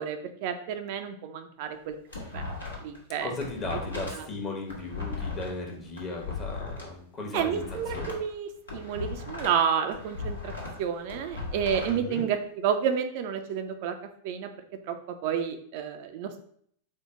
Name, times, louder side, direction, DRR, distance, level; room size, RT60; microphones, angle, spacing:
voice 1, 0.0-1.9 2.3-2.4 2.8-3.3 4.1-4.3 7.3-10.5 10.8-14.0 14.2-14.5 14.9-16.4, right 8 dB, 50° right, 7 dB, 0.3 m, -30 dB
sound 1, 1.7-3.0 3.3-6.8 7.3-9.6 9.9-11.9, left 4 dB, 75° left, 1.1 m, -37 dB
voice 2, 3.2-8.1 11.9-12.3, left 2 dB, 30° left, 2 dB, 0.9 m, -36 dB
4.4 x 2.0 x 3.6 m, 0.63 s
figure-of-eight pair, 90°, 0 cm